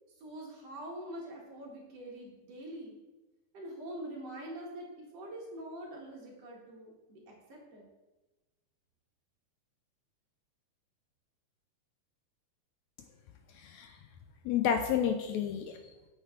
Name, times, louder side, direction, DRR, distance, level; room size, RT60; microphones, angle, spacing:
voice 1, 0.2-2.9 3.5-7.9, right 1 dB, 55° right, -2 dB, 2.4 m, -44 dB
voice 2, 13.5-14.0 14.5-16.1, left 8 dB, 80° left, 6 dB, 1.7 m, -31 dB
8.8 x 6.6 x 3.7 m, 1.1 s
omnidirectional pair, 3.6 m